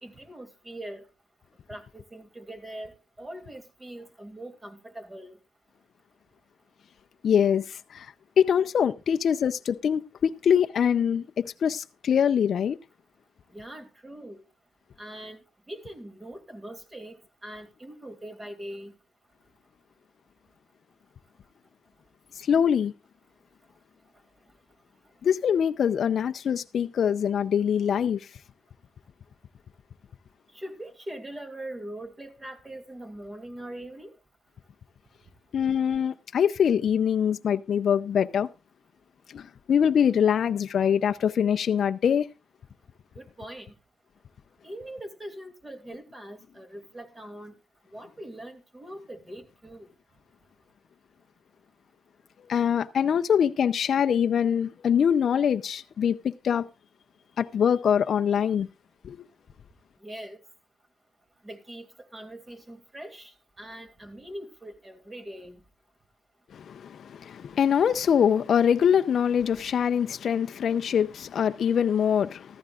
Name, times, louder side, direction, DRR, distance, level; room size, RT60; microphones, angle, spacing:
voice 1, 0.0-1.0 1.7-2.9 3.2-5.4 13.5-14.4 15.0-15.4 15.7-17.2 17.4-18.9 30.5-34.1 43.1-43.7 44.6-47.6 47.9-49.9 60.0-60.4 61.4-65.6, right 1 dB, 20° right, 2.5 m, -42 dB
voice 2, 7.2-12.8 22.4-22.9 25.2-28.3 35.5-38.5 39.3-42.3 52.5-56.7 57.4-58.7 59.0-59.2 66.5-72.6, left 8 dB, 55° left, 0.5 m, -24 dB
14.5 x 14.0 x 2.4 m
cardioid pair, 90°, 0 cm